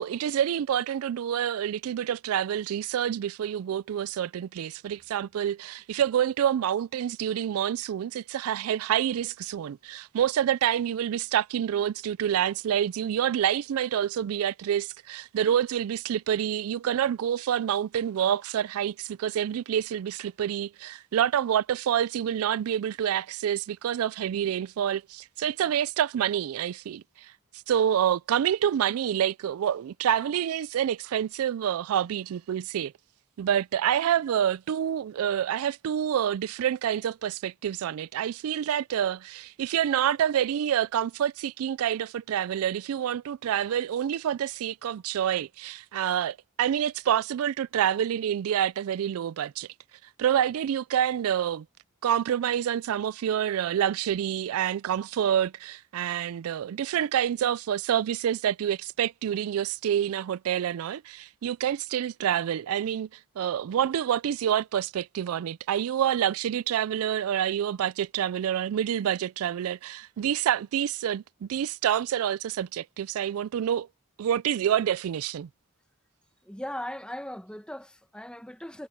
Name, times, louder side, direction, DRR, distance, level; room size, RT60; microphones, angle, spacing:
voice 1, 0.0-27.3 27.7-32.9 33.4-49.7 50.2-51.7 52.0-73.9 74.2-75.5, right 9 dB, 70° right, 0.3 m, -27 dB
voice 2, 76.4-78.9, left 1 dB, 5° left, 1.5 m, -38 dB
head